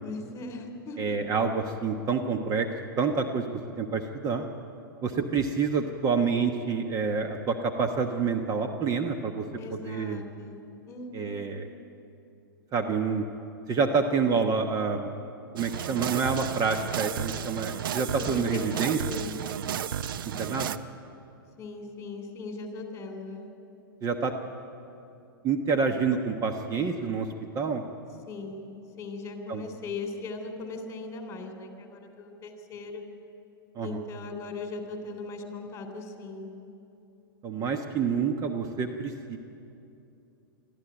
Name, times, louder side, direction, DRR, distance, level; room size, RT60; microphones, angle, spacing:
voice 1, 0.0-1.0 9.6-10.6 10.9-11.5 18.1-19.3 21.6-23.5 28.3-28.6 29.0-33.0 33.8-36.5, left 3 dB, 20° left, 4 dB, 3.5 m, -39 dB
voice 2, 1.0-2.7 3.0-3.5 3.8-4.5 5.0-9.4 9.7-10.2 11.1-11.7 12.7-13.2 13.7-15.1 15.5-19.2 20.4-20.7 24.0-24.3 25.4-27.3 27.5-27.8 29.5-29.6 33.7-34.0 37.4-39.4, right 5 dB, 30° right, 5 dB, 1.2 m, -28 dB
sound 1, 15.6-20.8, right 9 dB, 65° right, 0.7 m, -33 dB
22.5 x 14.0 x 9.2 m, 2.7 s
hypercardioid pair, 110°, 12 cm